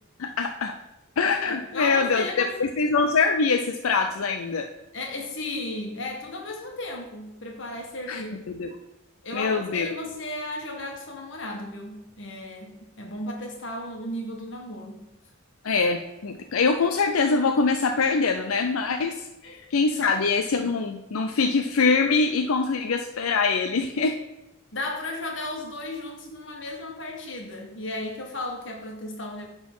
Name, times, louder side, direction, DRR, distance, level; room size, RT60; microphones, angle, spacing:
voice 1, 0.2-0.7 1.2-4.7 8.1-8.7 9.3-9.9 15.6-24.1, left 4 dB, 90° left, 5 dB, 0.5 m, -24 dB
voice 2, 1.5-2.6 4.9-8.4 9.2-15.1 19.4-19.7 20.0-20.2 24.7-29.5, left 1 dB, 60° left, 1 dB, 1.6 m, -35 dB
9.5 x 4.0 x 5.5 m, 0.94 s
head